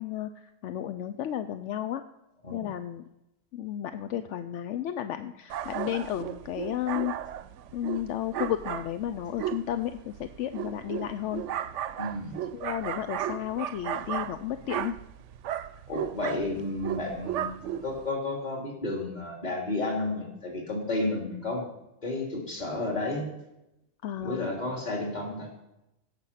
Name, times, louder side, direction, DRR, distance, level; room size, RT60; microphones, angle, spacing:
voice 1, 0.0-2.0 2.5-3.0 3.5-7.1 7.7-11.4 12.5-14.9 24.0-24.5, left 11 dB, 75° left, 10 dB, 0.9 m, -33 dB
sound 1, 5.5-18.1, right 10 dB, 75° right, 0.9 m, -35 dB
voice 2, 12.0-12.4 15.9-21.6 22.0-23.3 24.2-25.5, left 2 dB, 35° left, 0 dB, 2.9 m, -32 dB
16.5 x 6.8 x 5.7 m, 0.91 s
omnidirectional pair, 1.3 m